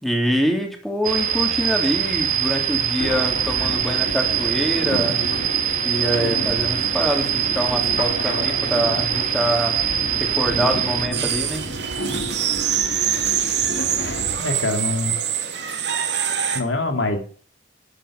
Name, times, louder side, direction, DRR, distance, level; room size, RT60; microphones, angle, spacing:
voice 1, 0.0-5.2 5.8-9.8 10.2-11.6, equal, ahead, 2 dB, 3.6 m, -25 dB
sound 1, 1.0-11.1, right 9 dB, 45° right, 2.6 m, -23 dB
sound 2, 3.0-14.4, equal, 65° left, 2.5 m, -31 dB
sound 3, 11.1-16.6, right 9 dB, 65° right, 2.9 m, -24 dB
voice 2, 14.4-15.1 16.5-17.2, left 2 dB, 85° left, 5 dB, 2.9 m, -24 dB
13.5 x 10.0 x 7.5 m, 0.44 s
head